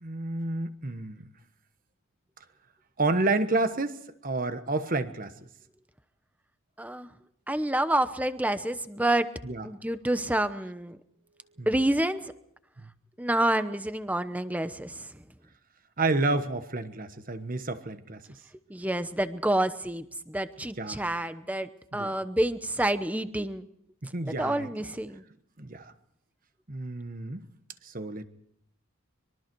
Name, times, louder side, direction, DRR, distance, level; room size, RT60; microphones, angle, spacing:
voice 1, 0.0-1.3 3.0-5.3 9.4-9.7 11.6-11.7 12.8-12.9 16.0-18.2 20.8-21.0 21.9-22.2 24.1-24.7 25.6-25.9 26.7-27.5 27.8-28.3, right 2 dB, 40° right, 10 dB, 1.3 m, -30 dB
voice 2, 6.8-7.1 7.5-9.3 9.6-11.0 11.7-12.3 13.2-15.2 18.7-23.7 24.2-25.2, right 1 dB, 5° right, 11 dB, 0.9 m, -28 dB
25.0 x 22.5 x 4.7 m, 0.72 s
head